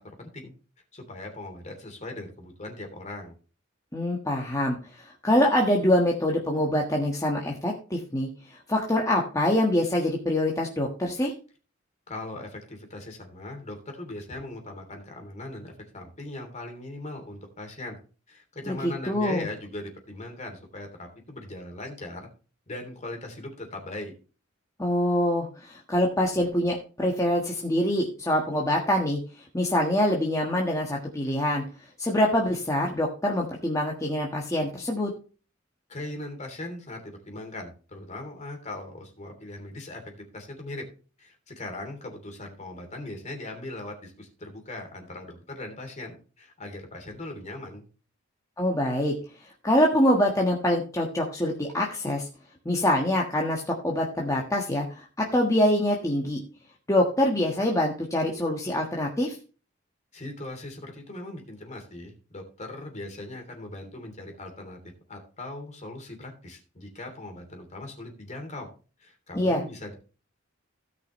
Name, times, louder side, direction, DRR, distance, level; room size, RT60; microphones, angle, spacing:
voice 1, 0.2-0.5 0.9-3.3 12.1-18.0 18.3-22.3 22.7-24.1 35.9-40.8 41.2-47.8 60.1-64.8 65.1-68.7 69.0-69.9, left 2 dB, 35° left, 3 dB, 3.0 m, -39 dB
voice 2, 3.9-4.8 5.0-8.3 8.7-11.3 18.7-19.5 24.8-29.2 29.5-31.6 32.0-35.1 48.6-49.1 49.6-52.3 52.6-56.4 56.9-59.4 69.3-69.6, left 1 dB, 15° left, -1 dB, 1.4 m, -25 dB
17.0 x 5.9 x 3.1 m, 0.36 s
head